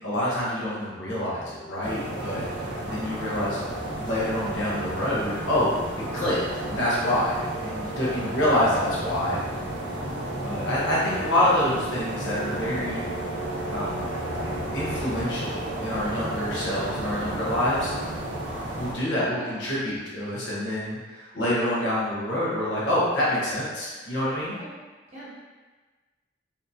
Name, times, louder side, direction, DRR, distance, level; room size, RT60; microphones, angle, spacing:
voice 1, 0.0-2.5 2.9-3.6 4.0-9.4 10.4-13.1 13.7-14.1 14.7-17.9 18.2-18.3 18.7-24.6, left 1 dB, 70° left, -7 dB, 0.8 m, -27 dB
sound 1, 1.8-18.9, right 1 dB, 65° right, 0.5 m, -32 dB
voice 2, 19.2-19.6 24.5-24.7 25.1-25.3, right 1 dB, 40° right, -10 dB, 1.0 m, -40 dB
2.7 x 2.5 x 2.2 m, 1.3 s
head